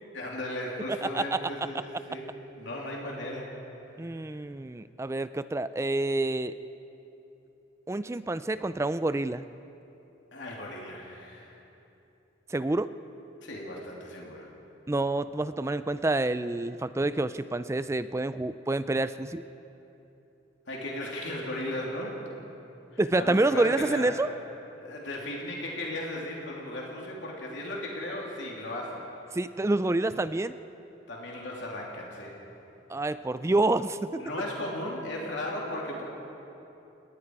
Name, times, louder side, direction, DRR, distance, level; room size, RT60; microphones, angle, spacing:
voice 1, 0.1-2.3 2.6-3.6 4.0-4.2 10.3-11.6 13.4-14.5 20.7-22.2 22.9-24.1 24.8-29.1 31.1-32.4 34.2-36.0, left 1 dB, 65° left, -2 dB, 3.2 m, -36 dB
voice 2, 0.9-1.7 4.0-6.5 7.9-9.5 12.5-12.9 14.9-19.4 23.0-24.3 29.3-30.5 32.9-34.2, right 2 dB, 15° right, 13 dB, 0.4 m, -28 dB
30.0 x 18.5 x 4.8 m, 2.9 s
head